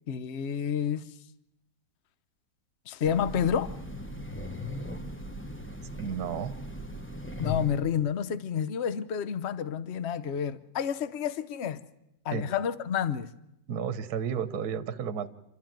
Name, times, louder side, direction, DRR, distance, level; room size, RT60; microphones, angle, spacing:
voice 1, 0.1-1.2 2.9-3.7 7.4-11.8 12.2-13.3, left 8 dB, 45° left, 0.9 m, -30 dB
Train, 3.0-8.0, left 1 dB, 10° left, 0.8 m, -38 dB
voice 2, 5.9-6.6 12.3-12.5 13.7-15.3, right 7 dB, 60° right, 1.5 m, -32 dB
28.0 x 13.0 x 9.1 m
omnidirectional pair, 2.1 m